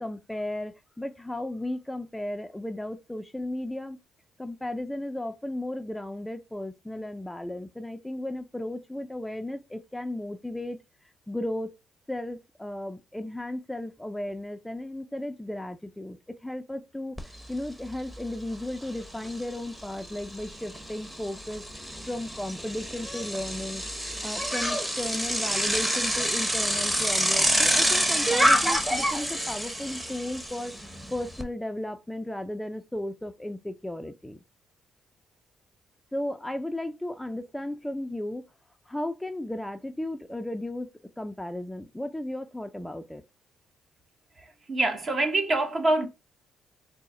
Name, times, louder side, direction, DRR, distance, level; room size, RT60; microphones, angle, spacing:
voice 1, 0.0-4.0 4.4-10.8 11.3-11.7 12.1-21.7 22.1-23.8 24.2-30.7 31.1-34.4 36.1-38.5 38.9-40.9 41.2-43.2, left 1 dB, 5° left, 0.4 m, -35 dB
Bicycle, 17.2-17.3 17.6-31.4, equal, 10° right, 0.8 m, -28 dB
voice 2, 44.7-46.1, right 2 dB, 45° right, 0.9 m, -25 dB
3.9 x 2.0 x 3.6 m
cardioid pair, 90°, 0 cm